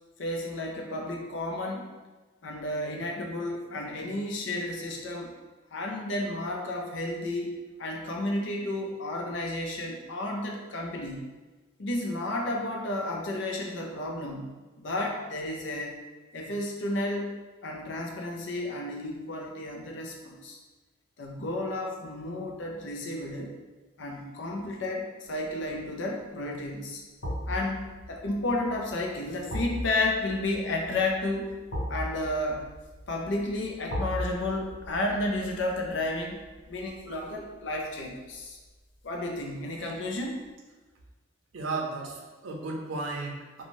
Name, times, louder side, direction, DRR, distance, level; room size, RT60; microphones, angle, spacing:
voice 1, 0.2-1.9 2.4-5.3 5.7-7.5 7.8-11.2 11.8-14.5 14.8-16.0 16.3-17.3 17.6-20.6 21.2-23.5 24.0-27.0 27.5-31.6 31.9-32.6 33.1-36.4 36.7-38.6 39.0-40.4, left 2 dB, 70° left, 1 dB, 0.5 m, -32 dB
sound 1, 25.5-25.8 27.2-38.2 38.5-38.7, equal, 85° left, 0.9 m, -38 dB
voice 2, 41.5-43.6, right 3 dB, 85° right, 0 dB, 0.5 m, -34 dB
2.6 x 2.3 x 3.0 m, 1.2 s
head